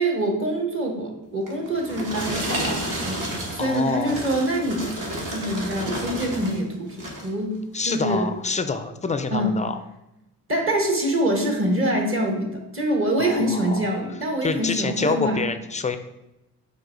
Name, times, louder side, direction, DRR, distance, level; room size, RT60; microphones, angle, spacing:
voice 1, 0.0-5.0 5.3-7.0 7.2-7.5 7.8-8.3 9.3-9.6 10.5-15.5, right 1 dB, 35° right, 2 dB, 1.1 m, -25 dB
sound 1, 1.5-6.6 6.9-7.3 7.9-8.1, right 1 dB, 55° right, 1.3 m, -31 dB
voice 2, 3.6-4.2 7.7-9.8 13.2-13.9 14.4-16.0, left 4 dB, 20° left, 9 dB, 0.3 m, -27 dB
4.8 x 2.2 x 3.7 m, 0.91 s
supercardioid pair, 55°, 38 cm